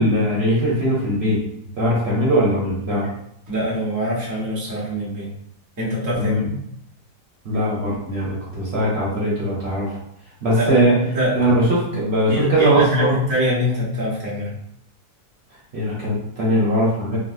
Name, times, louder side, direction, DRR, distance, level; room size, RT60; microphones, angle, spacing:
voice 1, 0.0-1.4 1.8-3.1 6.1-6.4 7.4-10.0 10.4-10.9 11.3-13.2 15.7-17.2, right 1 dB, 45° right, -6 dB, 1.0 m, -20 dB
voice 2, 3.5-5.3 5.8-6.5 10.5-10.7 11.0-11.3 12.3-14.5, equal, 20° right, -7 dB, 0.5 m, -23 dB
3.9 x 2.1 x 2.6 m, 0.72 s
omnidirectional pair, 1.8 m